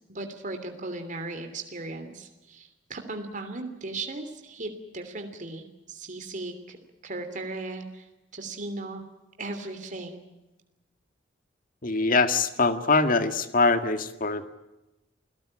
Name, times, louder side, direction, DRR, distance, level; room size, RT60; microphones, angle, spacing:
voice 1, 0.1-6.8 7.0-8.1 8.3-9.0 9.4-10.3, right 2 dB, 45° right, 6 dB, 3.0 m, -37 dB
voice 2, 11.8-14.5, left 3 dB, 50° left, 9 dB, 1.9 m, -23 dB
29.0 x 18.0 x 8.8 m, 1.0 s
head